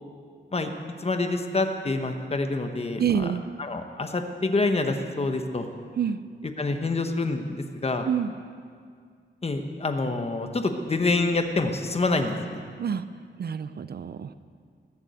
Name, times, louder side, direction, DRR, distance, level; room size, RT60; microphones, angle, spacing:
voice 1, 1.0-3.3 3.6-5.7 6.6-8.1 9.4-12.6, left 3 dB, 30° left, 6 dB, 1.0 m, -27 dB
voice 2, 3.0-3.4 6.0-6.2 8.0-8.3 12.8-13.0 13.4-14.3, right 8 dB, 55° right, 13 dB, 0.5 m, -27 dB
20.5 x 7.1 x 8.2 m, 2.1 s
wide cardioid pair, 165°, 20 cm